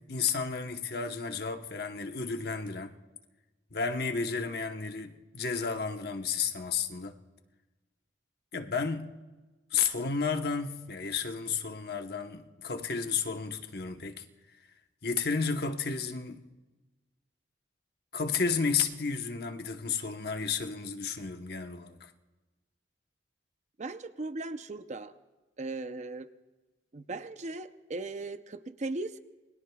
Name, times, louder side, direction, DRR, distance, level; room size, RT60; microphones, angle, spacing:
voice 1, 0.1-2.9 3.7-7.1 8.5-9.1 9.7-14.2 15.0-16.5 18.1-22.1, left 5 dB, 65° left, 1.0 m, -32 dB
voice 2, 23.8-25.1 25.6-26.3 26.9-29.2, right 2 dB, 45° right, 0.6 m, -38 dB
28.5 x 21.0 x 2.3 m
head